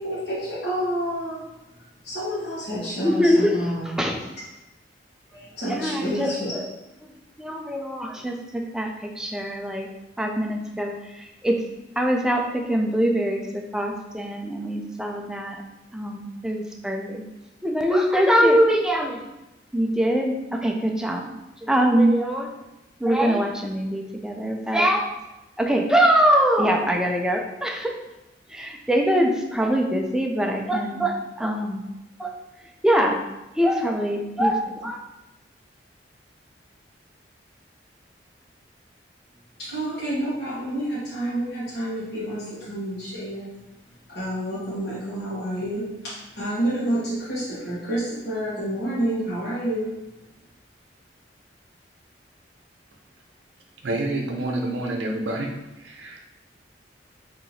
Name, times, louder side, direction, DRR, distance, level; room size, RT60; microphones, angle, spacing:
voice 1, 0.0-1.4 2.0-3.9 5.3-6.6 39.6-43.5 44.1-50.0, right 1 dB, 60° left, -11 dB, 1.2 m, -29 dB
voice 2, 3.0-3.7 4.0-4.2 5.7-6.7 7.4-9.9 10.2-11.6 12.0-15.6 15.9-17.3 17.6-19.2 19.7-21.3 21.6-22.5 23.0-25.1 25.6-27.9 28.5-31.8 32.2-32.3 32.8-33.2 33.6-35.0, equal, 5° right, 1 dB, 0.3 m, -23 dB
voice 3, 53.8-55.5 55.8-56.2, right 2 dB, 85° right, 1 dB, 0.6 m, -28 dB
4.3 x 2.8 x 2.7 m, 0.98 s
head